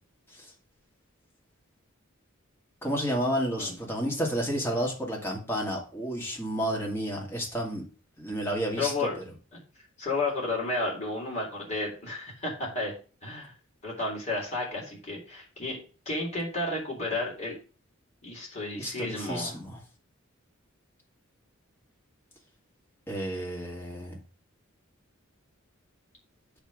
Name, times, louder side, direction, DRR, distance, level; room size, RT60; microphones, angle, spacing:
voice 1, 2.8-7.8 8.2-9.1 18.8-19.8 23.1-24.2, equal, 10° left, -2 dB, 2.4 m, -31 dB
voice 2, 8.8-9.2 9.5-9.6 10.0-12.9 13.2-13.5 13.8-15.8 16.0-17.6 18.2-19.6, left 2 dB, 35° left, -3 dB, 3.5 m, -32 dB
8.5 x 3.5 x 6.4 m, 0.37 s
head